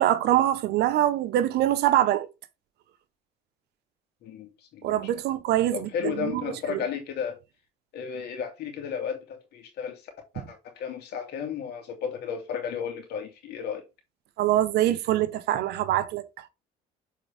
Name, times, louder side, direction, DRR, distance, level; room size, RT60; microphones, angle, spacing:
voice 1, 0.0-2.3 4.8-6.4 6.7-6.8 14.4-16.2, right 13 dB, 80° right, 0.9 m, -24 dB
voice 2, 4.2-4.9 5.7-7.4 7.9-13.8, left 7 dB, 70° left, 2.5 m, -33 dB
6.8 x 4.6 x 3.4 m
cardioid pair, 110°, 17 cm